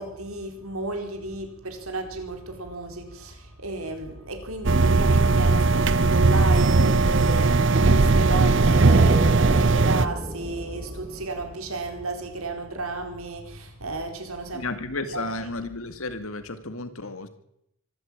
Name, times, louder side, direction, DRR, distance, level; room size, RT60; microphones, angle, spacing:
voice 1, 0.0-14.7 15.1-15.5, right 2 dB, 80° right, 5 dB, 4.5 m, -33 dB
sound 1, 4.6-10.1, right 3 dB, 55° right, 0.7 m, -18 dB
sound 2, 7.8-12.0, right 1 dB, 25° right, 1.6 m, -31 dB
voice 2, 14.5-17.3, left 2 dB, 75° left, 9 dB, 2.3 m, -33 dB
24.5 x 12.5 x 8.9 m, 0.77 s
head